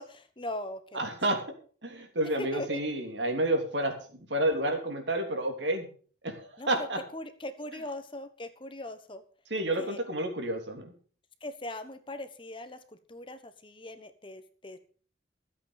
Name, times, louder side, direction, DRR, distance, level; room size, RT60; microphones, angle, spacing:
voice 1, 0.0-1.2 2.4-2.8 6.6-6.7 7.1-9.2 9.8-10.0 11.4-12.8 13.1-14.8, left 1 dB, 30° left, 10 dB, 1.2 m, -40 dB
voice 2, 0.9-1.4 1.8-5.9 6.2-7.0 9.5-10.9, right 1 dB, 85° right, 4 dB, 3.3 m, -30 dB
13.5 x 8.3 x 6.5 m, 0.42 s
head